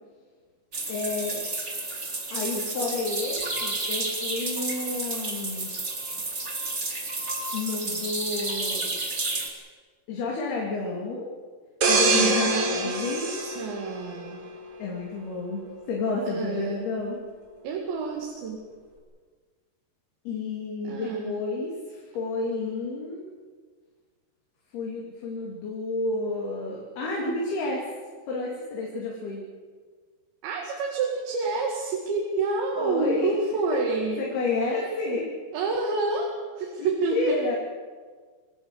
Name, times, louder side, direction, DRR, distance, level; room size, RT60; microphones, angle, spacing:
sound 1, 0.7-9.5, right 2 dB, 20° right, 2.3 m, -31 dB
voice 1, 0.9-1.4 2.3-5.7 7.5-9.0 10.1-11.3 11.9-13.3 14.8-17.2 20.2-23.2 24.7-27.8 28.3-29.4 32.7-33.4 34.2-35.3 36.8-37.6, left 3 dB, 65° left, -2 dB, 4.8 m, -30 dB
sound 2, 11.8-14.5 14.9-15.2, right 2 dB, 35° right, 4.0 m, -24 dB
voice 2, 12.1-14.4 16.2-16.8 17.6-18.6 20.9-21.4 30.4-34.3 34.6-34.9 35.5-37.4, right 4 dB, 85° right, 0 dB, 4.5 m, -29 dB
25.5 x 17.5 x 8.0 m, 1.5 s
omnidirectional pair, 5.0 m